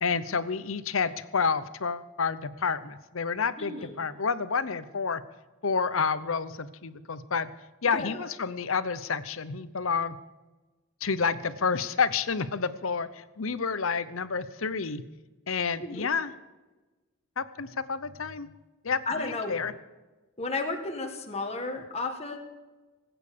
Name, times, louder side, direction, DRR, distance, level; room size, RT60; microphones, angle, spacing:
voice 1, 0.0-5.2 5.6-7.5 7.8-10.2 11.0-15.0 15.5-16.3 17.4-18.5 18.8-19.7, left 5 dB, 70° left, 14 dB, 0.8 m, -29 dB
voice 2, 3.6-3.9 7.8-8.3 15.8-16.1 19.0-19.6 20.4-22.4, left 3 dB, 30° left, 3 dB, 1.6 m, -33 dB
19.5 x 9.0 x 6.8 m, 1.2 s
head